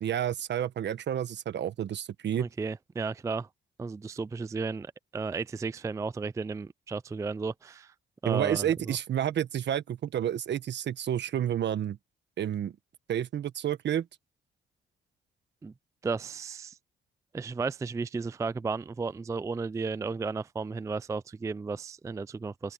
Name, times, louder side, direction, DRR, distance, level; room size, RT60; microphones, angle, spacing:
voice 1, 0.0-2.5 8.2-12.0 12.4-12.7 13.1-14.1, right 10 dB, 60° right, 1.4 m, -30 dB
voice 2, 2.4-3.5 3.8-7.9 8.2-9.0 15.6-15.7 16.0-16.8 17.3-22.7, right 4 dB, 15° right, 0.4 m, -34 dB
open air
cardioid pair, 90°, 20 cm